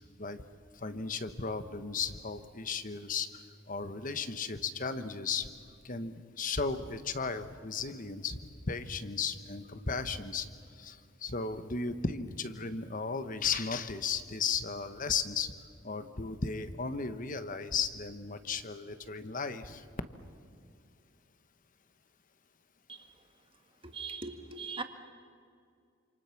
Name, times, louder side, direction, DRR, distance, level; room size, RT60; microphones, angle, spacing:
voice 1, 0.8-5.5 5.8-8.4 8.7-10.5 10.8-15.5 15.8-19.8, left 5 dB, 40° left, 11 dB, 1.2 m, -35 dB
voice 2, 23.8-24.8, right 4 dB, 25° right, 6 dB, 1.8 m, -40 dB
28.0 x 27.5 x 6.0 m, 2.4 s
head